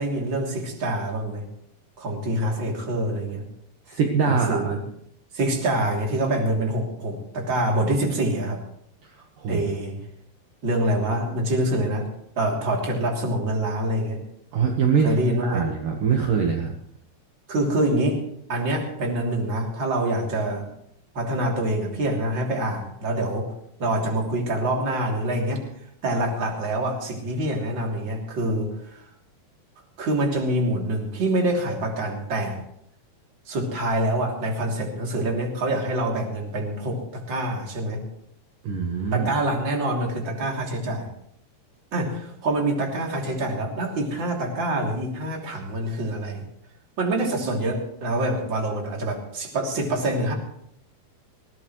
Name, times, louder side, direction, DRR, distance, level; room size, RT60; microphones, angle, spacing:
voice 1, 0.0-1.5 2.0-3.5 4.3-4.8 5.3-8.6 9.5-10.0 10.6-12.1 12.4-14.2 15.0-15.6 17.5-18.2 18.5-20.7 21.1-23.5 23.8-25.6 26.0-29.0 30.0-32.6 33.5-38.0 39.1-41.1 41.9-46.4 47.0-50.3, right 1 dB, 30° right, 0 dB, 3.2 m, -25 dB
voice 2, 3.9-4.8 9.0-9.7 14.5-15.1 15.4-16.7 38.6-39.3, right 6 dB, 65° right, 2 dB, 2.7 m, -23 dB
21.0 x 17.0 x 3.2 m, 0.71 s
omnidirectional pair, 4.7 m